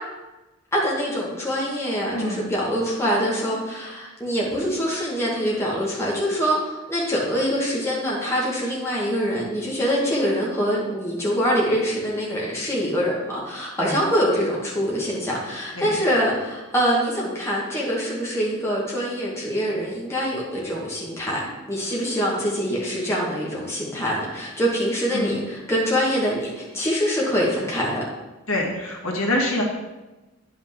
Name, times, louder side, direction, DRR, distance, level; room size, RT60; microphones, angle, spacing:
voice 1, 0.7-28.0, equal, 10° left, -5 dB, 1.5 m, -24 dB
voice 2, 28.5-29.6, left 1 dB, 75° left, -1 dB, 1.6 m, -25 dB
9.8 x 5.5 x 3.6 m, 1.1 s
head